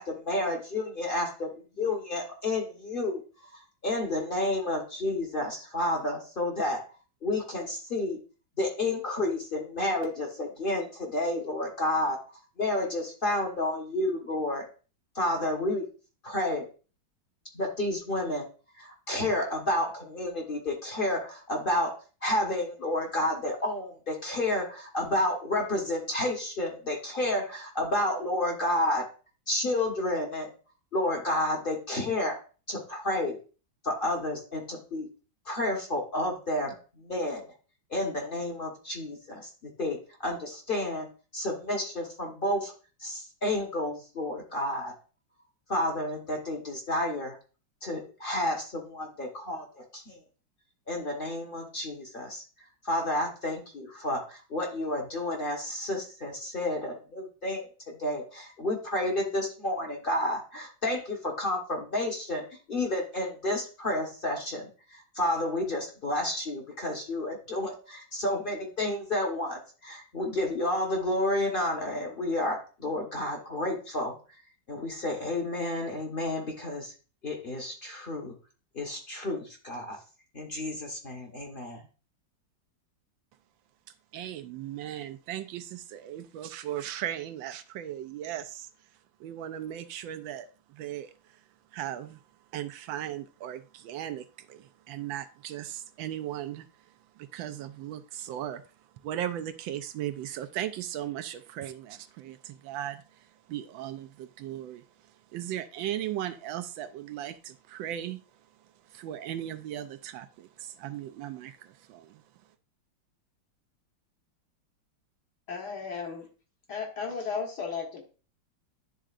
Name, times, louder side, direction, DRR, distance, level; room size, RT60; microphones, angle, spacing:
voice 1, 0.0-1.5 1.8-3.2 3.5-6.8 7.2-8.2 8.6-12.2 12.6-14.7 15.1-15.8 16.2-16.6 17.5-18.5 18.8-29.1 29.5-30.5 30.9-32.4 32.7-33.4 33.8-35.1 35.5-37.5 37.9-40.0 40.2-41.1 41.3-42.7 43.0-44.9 45.7-47.4 47.8-50.2 50.9-52.4 52.8-64.7 65.1-74.2 74.7-76.9 77.2-78.3 78.7-80.0 80.3-81.8, left 1 dB, 35° left, 1 dB, 1.1 m, -30 dB
voice 2, 84.1-88.7 89.2-91.1 91.7-92.2 92.5-96.7 97.2-98.6 99.0-103.0 103.5-104.8 105.3-108.2 108.9-112.2, right 11 dB, 80° right, 11 dB, 1.3 m, -37 dB
voice 3, 115.5-116.3 116.7-118.1, left 5 dB, 60° left, 0 dB, 1.9 m, -34 dB
11.0 x 3.8 x 2.4 m, 0.35 s
omnidirectional pair, 2.1 m